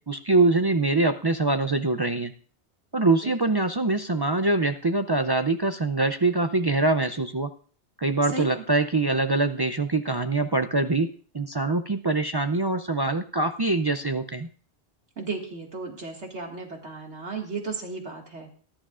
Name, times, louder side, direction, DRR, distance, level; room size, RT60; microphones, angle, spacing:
voice 1, 0.1-2.3 2.9-7.5 8.0-11.1 11.3-14.5, right 2 dB, 40° right, 8 dB, 0.3 m, -24 dB
voice 2, 8.3-8.6 15.2-18.5, right 4 dB, 85° right, 1 dB, 2.3 m, -35 dB
19.0 x 11.5 x 2.5 m, 0.43 s
omnidirectional pair, 1.1 m